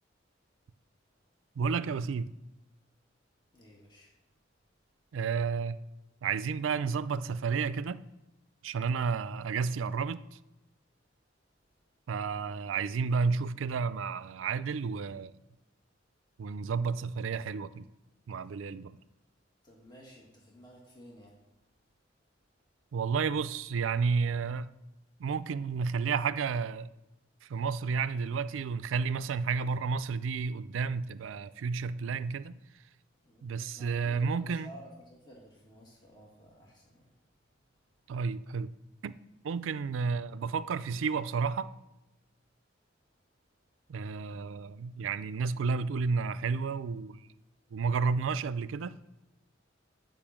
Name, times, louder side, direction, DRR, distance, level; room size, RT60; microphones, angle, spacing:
voice 1, 1.6-2.3 5.1-5.8 6.2-8.0 8.6-10.2 12.1-15.3 16.4-17.9 18.3-19.0 22.9-24.7 25.2-26.9 27.4-32.5 33.4-34.7 38.1-38.7 39.0-39.1 39.4-41.7 43.9-47.2 47.7-49.0, right 5 dB, 90° right, 0.4 m, -31 dB
voice 2, 3.5-4.1 19.6-21.4 33.2-33.5 33.7-37.1, equal, 25° left, 1.8 m, -53 dB
8.8 x 5.4 x 7.2 m
head